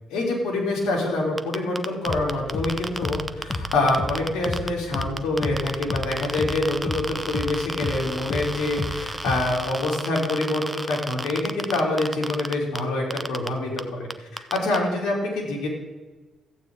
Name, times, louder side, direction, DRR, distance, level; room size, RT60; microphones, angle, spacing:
voice 1, 0.1-15.7, left 2 dB, 85° left, -2 dB, 3.5 m, -26 dB
sound 1, 1.4-4.7 4.9-12.8 13.1-13.5 13.8-13.9 14.1-14.8, right 1 dB, 10° right, 0.6 m, -32 dB
sound 2, 2.1-9.7, left 2 dB, 35° left, 1.1 m, -33 dB
14.0 x 8.7 x 3.9 m, 1.2 s
cardioid pair, 90°, 0 cm